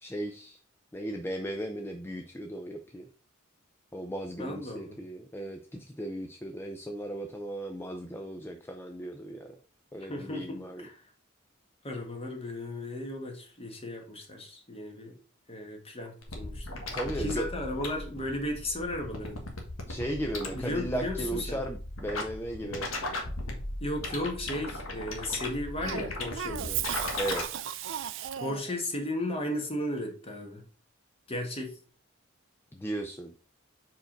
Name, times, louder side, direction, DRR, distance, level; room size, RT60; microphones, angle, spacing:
voice 1, 0.0-0.6 0.9-3.1 3.9-9.6 9.9-10.9 16.9-17.5 19.9-22.9 27.2-27.4 32.7-33.3, right 1 dB, 10° left, 0.5 m, -36 dB
voice 2, 4.4-5.0 10.1-11.0 11.8-15.2 15.5-19.4 20.5-21.6 23.8-26.9 28.4-30.6 31.3-31.8, left 1 dB, 30° left, 1.5 m, -35 dB
sound 1, 16.2-27.4, left 2 dB, 85° left, 1.5 m, -37 dB
Cough, 25.8-28.8, right 10 dB, 65° right, 0.4 m, -35 dB
4.8 x 4.5 x 5.1 m
head